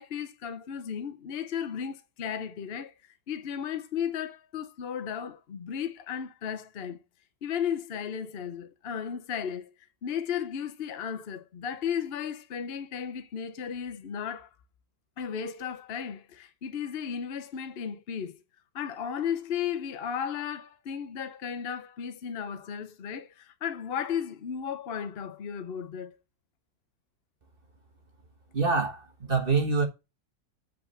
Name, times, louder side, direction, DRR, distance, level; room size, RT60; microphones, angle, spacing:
voice 1, 0.0-7.0 7.4-9.7 10.0-14.5 15.2-18.4 18.7-26.1, left 8 dB, 55° left, 0.7 m, -34 dB
voice 2, 28.5-29.9, right 4 dB, 35° right, 1.2 m, -25 dB
8.2 x 4.1 x 5.5 m
omnidirectional pair, 2.0 m